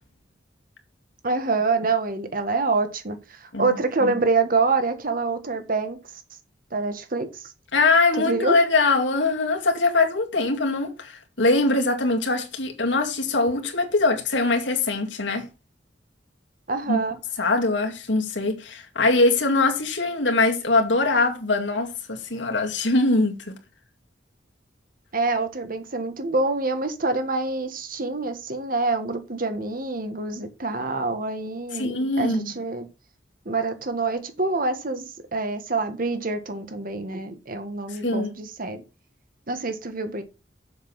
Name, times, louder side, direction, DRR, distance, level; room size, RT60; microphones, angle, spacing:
voice 1, 1.2-6.0 6.7-7.5 8.2-8.5 16.7-17.2 25.1-32.9 33.4-38.8 39.5-40.2, right 3 dB, 50° right, 1.6 m, -26 dB
voice 2, 3.5-4.1 7.7-15.5 16.9-17.0 17.4-23.6 31.7-32.5 37.9-38.3, left 3 dB, 80° left, 2.1 m, -22 dB
7.2 x 6.8 x 5.8 m
head